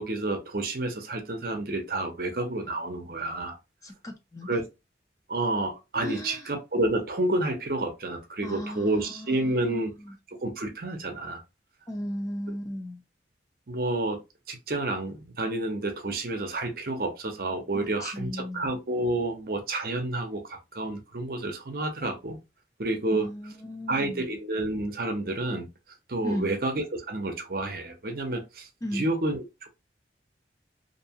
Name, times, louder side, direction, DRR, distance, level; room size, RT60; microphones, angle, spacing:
voice 1, 0.0-3.6 4.5-4.6 5.3-9.9 10.3-11.4 12.5-12.6 13.7-14.2 14.5-22.4 22.8-23.3 23.9-25.7 26.1-29.7, right 2 dB, 55° right, 0.6 m, -30 dB
voice 2, 3.8-4.6 6.0-6.5 8.4-10.2 11.9-13.0 17.7-18.7 23.1-24.3 26.2-26.5 28.8-29.1, equal, 20° left, 0.4 m, -36 dB
2.6 x 2.2 x 2.7 m
head